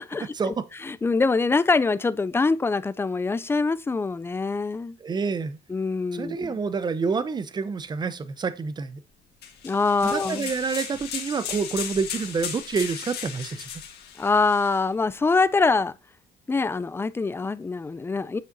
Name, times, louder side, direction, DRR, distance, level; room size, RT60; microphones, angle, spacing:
voice 1, 0.3-0.7 5.0-5.6 6.1-9.0 10.0-13.7, right 5 dB, 25° right, 0.6 m, -28 dB
voice 2, 0.9-5.0 5.7-6.6 9.6-10.5 14.2-15.9 16.5-18.4, left 4 dB, 15° left, 0.3 m, -24 dB
sound 1, 9.4-14.8, left 8 dB, 75° left, 1.5 m, -36 dB
7.2 x 5.7 x 2.6 m
cardioid pair, 110°, 17 cm